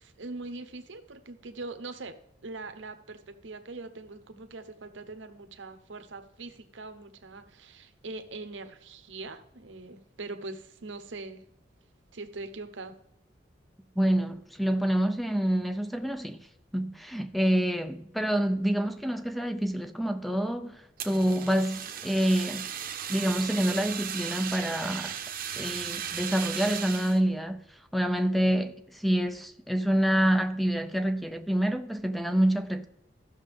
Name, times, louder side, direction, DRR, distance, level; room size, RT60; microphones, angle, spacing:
voice 1, 0.0-11.5 12.1-13.0, right 3 dB, 75° right, 0.9 m, -42 dB
voice 2, 14.0-16.5 16.7-22.7 23.1-25.2 25.6-27.6 27.9-32.9, right 1 dB, ahead, 0.4 m, -27 dB
Fire, 21.0-27.2, right 9 dB, 50° right, 0.8 m, -36 dB
14.0 x 6.4 x 3.5 m
head